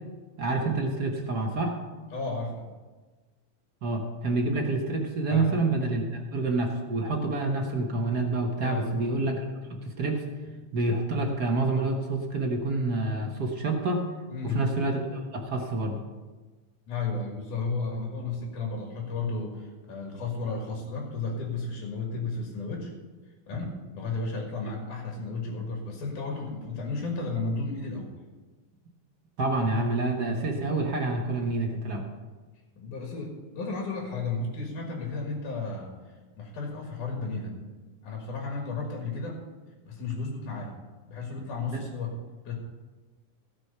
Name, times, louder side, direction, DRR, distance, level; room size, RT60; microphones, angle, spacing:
voice 1, 0.4-1.7 3.8-6.0 6.3-10.2 10.7-14.1 14.4-16.0 29.4-32.1 41.7-41.8, right 2 dB, 60° right, 1 dB, 1.0 m, -28 dB
voice 2, 2.1-2.7 5.3-5.5 8.6-9.1 14.3-14.6 16.9-22.9 23.5-28.1 32.8-35.9 36.4-37.6 38.0-39.4 39.9-40.8 41.1-42.1 42.4-42.6, left 3 dB, 90° left, 1 dB, 3.3 m, -33 dB
16.5 x 6.3 x 5.6 m, 1.3 s
omnidirectional pair, 3.4 m